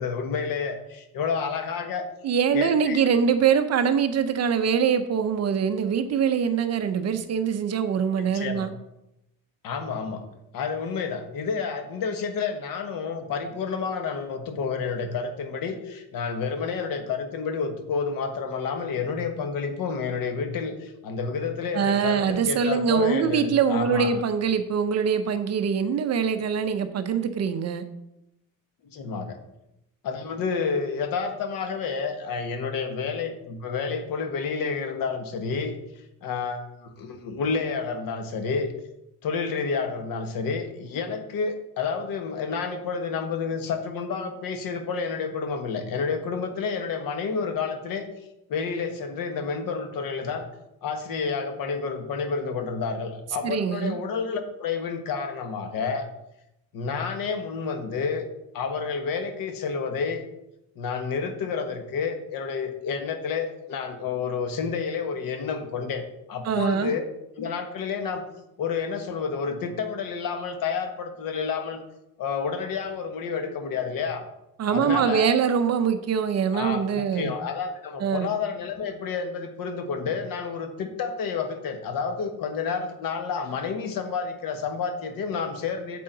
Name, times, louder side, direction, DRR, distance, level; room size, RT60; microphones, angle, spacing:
voice 1, 0.0-2.0 2.5-3.0 8.2-8.7 9.6-10.3 10.5-24.1 28.8-29.4 30.0-35.8 36.2-38.7 39.2-48.0 48.5-50.5 50.8-56.1 56.7-58.3 58.5-60.2 60.7-67.0 67.4-68.2 68.6-71.8 72.2-74.3 74.7-75.3 76.5-86.0, left 5 dB, 65° left, 6 dB, 1.3 m, -30 dB
voice 2, 2.2-8.7 21.7-27.8 53.4-54.0 66.4-66.9 74.6-77.3 78.0-78.3, right 7 dB, 45° right, 9 dB, 0.7 m, -23 dB
8.6 x 7.6 x 3.9 m, 0.86 s
cardioid pair, 170°, 36 cm